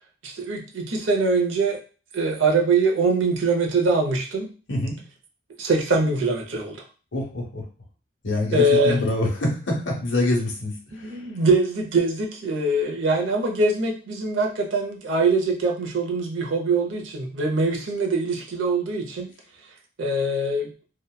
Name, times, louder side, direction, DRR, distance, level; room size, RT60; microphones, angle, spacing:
voice 1, 0.2-1.8 2.1-4.5 5.6-6.8 8.5-9.0 10.9-19.3 20.0-20.7, right 3 dB, 85° right, 1 dB, 0.6 m, -23 dB
voice 2, 7.1-7.6 8.2-10.8 11.1-11.2, left 1 dB, 75° left, -1 dB, 0.9 m, -25 dB
2.8 x 2.1 x 2.2 m, 0.37 s
head